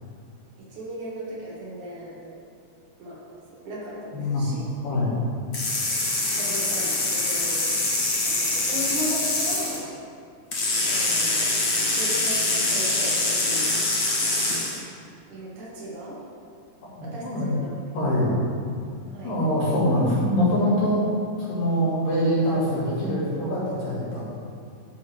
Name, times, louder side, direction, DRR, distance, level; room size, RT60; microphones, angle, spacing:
voice 1, 0.7-2.2 3.0-3.2 3.5-4.6 4.9-5.1 6.4-7.7 8.2-9.9 10.8-11.5 12.0-13.8 15.3-16.2 17.0-17.7 19.1-19.4, equal, 65° right, -5 dB, 3.0 m, -36 dB
voice 2, 4.1-5.2 16.8-17.5 17.9-18.4 19.2-24.2, equal, 90° left, -9 dB, 4.2 m, -24 dB
sound 1, 5.5-9.8 10.5-14.8, left 2 dB, 65° left, 1.0 m, -24 dB
12.5 x 5.5 x 3.5 m, 2.3 s
omnidirectional pair, 3.8 m